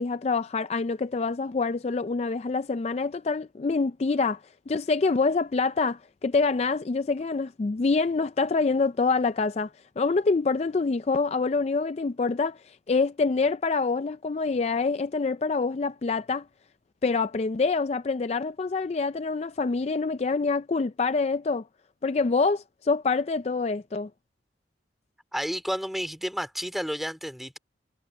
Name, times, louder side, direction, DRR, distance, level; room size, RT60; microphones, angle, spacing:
voice 1, 0.0-4.4 4.7-16.5 17.0-21.6 22.0-24.1, left 4 dB, 35° left, 0.4 m, -26 dB
voice 2, 25.3-27.6, equal, ahead, 2.6 m, -31 dB
head